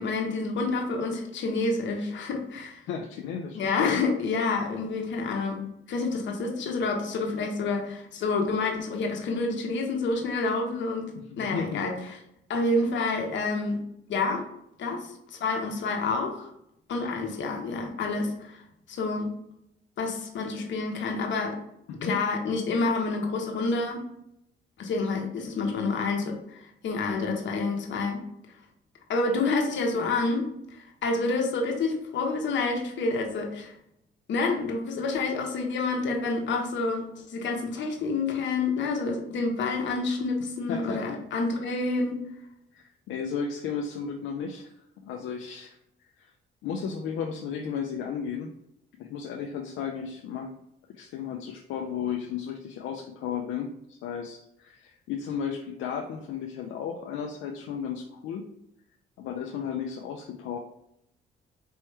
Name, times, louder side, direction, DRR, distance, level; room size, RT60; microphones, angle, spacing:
voice 1, 0.0-2.8 3.5-5.6 5.9-11.1 11.4-11.9 12.5-13.8 14.1-14.5 14.8-16.5 16.9-18.6 18.9-19.3 20.0-21.6 22.0-24.0 24.8-28.2 29.1-33.7 34.3-42.2, left 3 dB, 65° left, 2 dB, 1.1 m, -28 dB
voice 2, 2.9-4.0 9.9-10.0 11.1-11.8 21.9-22.2 40.7-41.2 42.7-45.8 46.2-46.3 46.6-48.5 49.0-50.5 50.9-58.4 59.2-60.6, left 7 dB, 85° left, 2 dB, 0.5 m, -34 dB
4.5 x 3.0 x 3.2 m, 0.78 s
cardioid pair, 90°, 20 cm